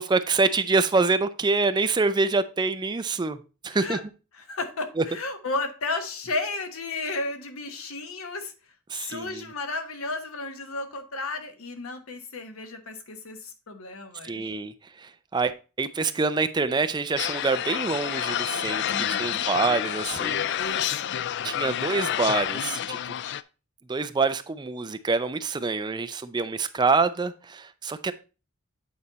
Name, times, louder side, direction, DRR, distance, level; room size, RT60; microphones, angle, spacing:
voice 1, 0.0-3.4 3.6-4.0 5.0-5.1 8.9-9.4 14.2-20.4 21.4-23.2 23.9-28.1, right 4 dB, 20° right, 0.4 m, -26 dB
voice 2, 3.7-4.0 4.4-8.5 8.9-14.5 18.9-19.4 20.6-21.2, left 3 dB, 80° left, 1.2 m, -33 dB
sound 1, 17.2-23.4, left 10 dB, 55° left, 0.3 m, -29 dB
8.6 x 4.2 x 4.0 m
head